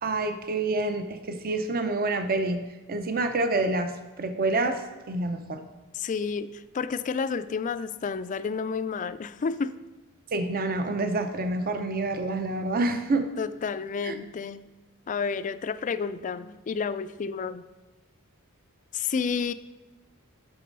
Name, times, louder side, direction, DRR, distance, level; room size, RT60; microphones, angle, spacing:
voice 1, 0.0-2.6 2.9-4.8 5.1-5.7 10.3-13.3 14.0-14.2, right 2 dB, 40° right, 8 dB, 0.6 m, -27 dB
voice 2, 5.9-9.7 13.4-14.6 15.1-17.6 18.9-19.5, left 5 dB, 35° left, 14 dB, 0.3 m, -30 dB
8.4 x 6.1 x 5.3 m, 1.2 s
head